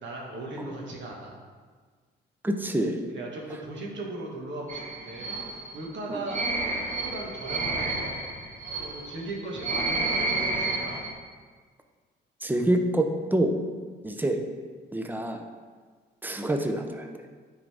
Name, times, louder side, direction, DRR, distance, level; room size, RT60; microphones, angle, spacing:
voice 1, 0.0-1.4 3.1-6.5 6.7-8.1 8.8-11.0, right 2 dB, 65° right, -2 dB, 1.5 m, -38 dB
voice 2, 2.4-3.1 6.1-6.2 12.4-13.5 14.0-14.4 14.9-15.4 16.2-17.1, right 1 dB, 10° right, 5 dB, 0.6 m, -26 dB
sound 1, 4.7-11.1, right 2 dB, 40° right, 1.3 m, -30 dB
9.5 x 3.9 x 3.4 m, 1.5 s
cardioid pair, 90°, 20 cm